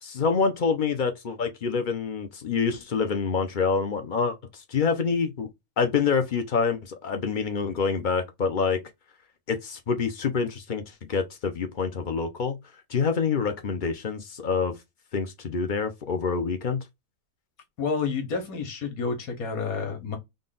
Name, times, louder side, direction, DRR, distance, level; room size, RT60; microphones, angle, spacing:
voice 1, 0.0-4.4 4.7-5.5 5.8-8.8 9.5-10.8 11.1-12.6 12.9-14.7 15.1-16.8, left 5 dB, 55° left, 0.5 m, -26 dB
voice 2, 17.8-20.2, left 5 dB, 75° left, 1.6 m, -29 dB
3.8 x 2.3 x 3.7 m
omnidirectional pair, 1.5 m